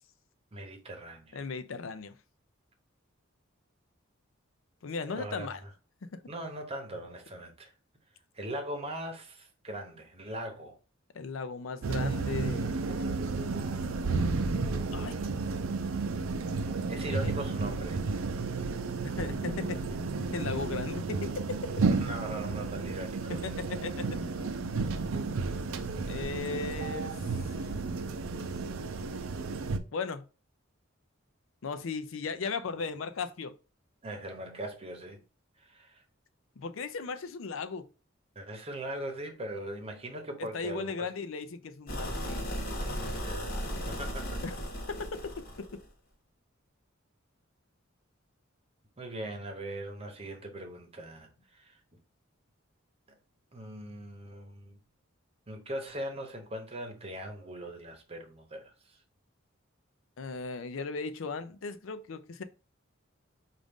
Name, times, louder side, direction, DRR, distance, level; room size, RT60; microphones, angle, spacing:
voice 1, 0.5-1.5 5.1-5.7 6.3-7.7 8.3-10.8 13.0-13.1 13.6-13.9 16.9-18.0 21.9-23.4 34.0-35.2 35.6-36.0 38.3-41.1 43.2-43.6 43.9-44.4 49.0-51.8 53.1-53.2 53.5-54.8 55.5-59.0, right 1 dB, 30° right, 1.0 m, -40 dB
voice 2, 1.3-2.2 4.8-5.6 6.1-6.2 11.1-12.8 14.9-15.2 17.1-17.3 19.0-19.8 20.3-21.7 23.3-24.2 26.1-27.2 29.9-30.2 31.6-33.5 36.6-37.9 40.5-42.5 44.4-44.5 44.9-45.8 60.2-62.4, left 4 dB, 70° left, 0.5 m, -37 dB
sound 1, 11.8-29.8, right 4 dB, 80° right, 0.5 m, -32 dB
sound 2, 41.9-45.9, equal, 50° left, 1.2 m, -36 dB
5.0 x 2.5 x 3.5 m
head